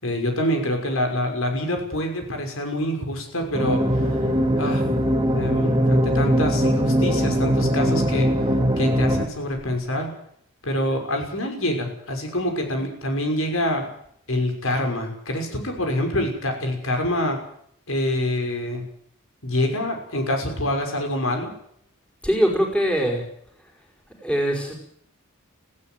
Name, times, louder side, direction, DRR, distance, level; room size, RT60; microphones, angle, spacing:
voice 1, 0.0-4.1 4.6-4.9 5.3-8.3 8.8-10.1 10.6-13.9 14.3-17.4 17.9-18.9 19.4-21.5, left 1 dB, 70° left, 3 dB, 6.0 m, -26 dB
sound 1, 3.5-9.3, equal, 20° right, 2.4 m, -21 dB
voice 2, 22.2-23.2 24.2-24.7, equal, 5° left, 1 dB, 5.2 m, -22 dB
19.0 x 16.5 x 9.2 m, 0.68 s
head